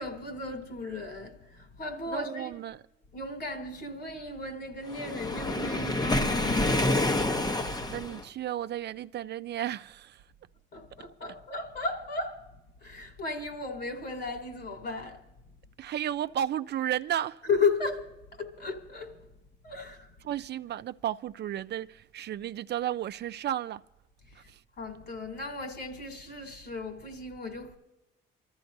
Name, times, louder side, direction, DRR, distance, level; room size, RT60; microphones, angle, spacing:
voice 1, 0.0-2.5 3.1-6.8 10.7-12.4 12.8-15.2 17.5-18.1 18.3-19.2 19.6-20.1 24.8-27.8, left 4 dB, 55° left, 2.8 m, -34 dB
voice 2, 2.1-2.8 7.9-10.2 15.8-17.4 20.2-23.8 24.4-24.6, right 11 dB, 60° right, 0.5 m, -33 dB
Waves surf, 4.9-8.2, left 1 dB, 20° left, 0.9 m, -28 dB
26.5 x 14.0 x 2.6 m
cardioid pair, 90°, 20 cm